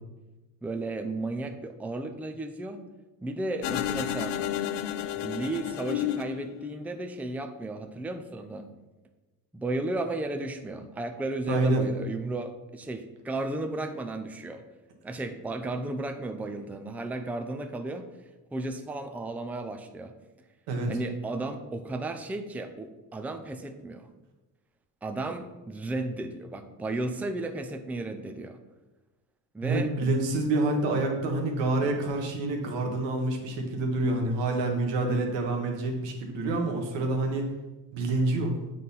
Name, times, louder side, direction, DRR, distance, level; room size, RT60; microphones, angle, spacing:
voice 1, 0.6-2.8 3.2-4.4 5.1-8.7 9.5-14.6 15.0-18.1 18.5-20.1 20.8-24.1 25.0-28.6 29.5-29.9, right 2 dB, 5° right, 6 dB, 0.4 m, -34 dB
sound 1, 3.6-7.0, left 11 dB, 75° left, 0.5 m, -31 dB
voice 2, 11.5-11.9 20.7-20.9 29.6-37.5 37.9-38.5, right 2 dB, 90° right, 3 dB, 1.3 m, -27 dB
7.5 x 3.8 x 4.0 m, 1.1 s
cardioid pair, 90°, 42 cm